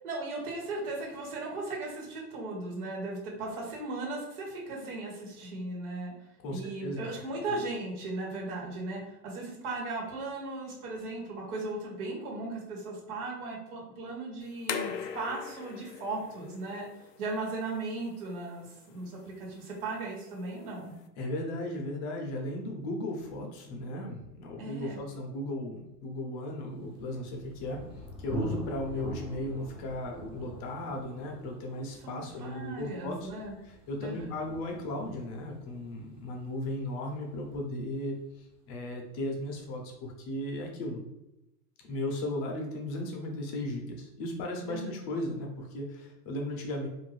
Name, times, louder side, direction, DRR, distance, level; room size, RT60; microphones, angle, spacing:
voice 1, 0.0-6.1 6.5-16.9 17.2-20.9 24.6-25.0 32.0-33.6 34.0-34.3 44.7-44.9, right 2 dB, 65° right, -2 dB, 1.4 m, -37 dB
voice 2, 6.4-7.1 21.2-33.3 33.6-41.0 41.8-46.9, left 1 dB, 35° left, 1 dB, 0.7 m, -36 dB
sound 1, 14.4-21.1, left 7 dB, 85° left, 0.6 m, -42 dB
Thunder, 26.9-38.5, equal, 10° right, 0.6 m, -44 dB
2.6 x 2.6 x 3.2 m, 0.91 s
hypercardioid pair, 135°, 48 cm